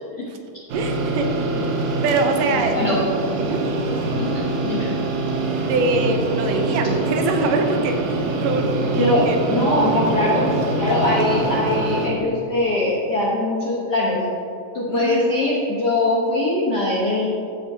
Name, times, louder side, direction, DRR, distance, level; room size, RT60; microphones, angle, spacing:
sound 1, 0.7-12.1, right 2 dB, 70° right, 2.4 m, -24 dB
voice 1, 0.7-1.3 2.0-2.8 3.4-3.6 5.4-10.3 14.9-15.2, right 3 dB, 90° right, 5 dB, 2.5 m, -24 dB
voice 2, 2.7-3.4 4.2-4.9 8.9-10.5 10.8-14.2 14.7-17.2, left 1 dB, 60° left, -5 dB, 1.0 m, -22 dB
14.5 x 7.8 x 2.8 m, 2.7 s
omnidirectional pair, 3.7 m